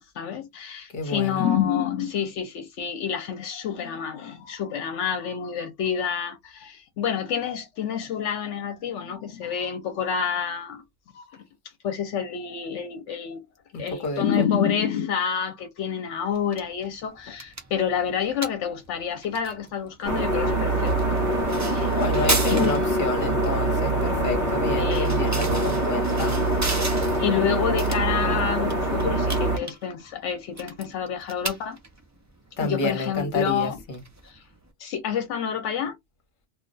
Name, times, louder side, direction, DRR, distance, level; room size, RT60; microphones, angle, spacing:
voice 1, 0.0-10.8 11.1-11.4 11.8-13.4 13.7-21.2 21.6-21.9 22.5-22.9 24.8-25.1 27.2-31.8 32.6-33.8 34.2-34.4 34.8-35.9, left 8 dB, 80° left, 0.9 m, -28 dB
voice 2, 0.9-1.4 13.7-14.4 21.9-26.3 32.6-34.0, left 2 dB, 45° left, 1.1 m, -29 dB
sound 1, 16.3-34.7, right 3 dB, 25° right, 0.3 m, -36 dB
sound 2, 20.0-29.6, right 2 dB, 40° right, 0.9 m, -24 dB
2.3 x 2.2 x 3.8 m
omnidirectional pair, 1.2 m